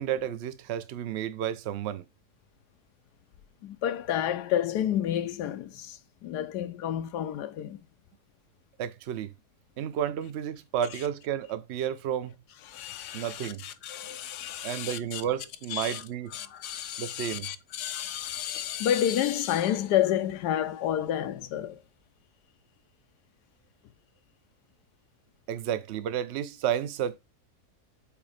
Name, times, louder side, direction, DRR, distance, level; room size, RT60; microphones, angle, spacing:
voice 1, 0.0-2.1 8.8-9.3 9.8-12.3 13.1-13.6 14.6-16.5 17.0-17.5 25.5-27.1, right 10 dB, 60° right, 0.7 m, -31 dB
voice 2, 3.6-7.8 12.7-15.2 15.7-16.0 16.3-21.8, left 11 dB, 85° left, 1.2 m, -30 dB
8.2 x 2.9 x 4.9 m
omnidirectional pair, 1.7 m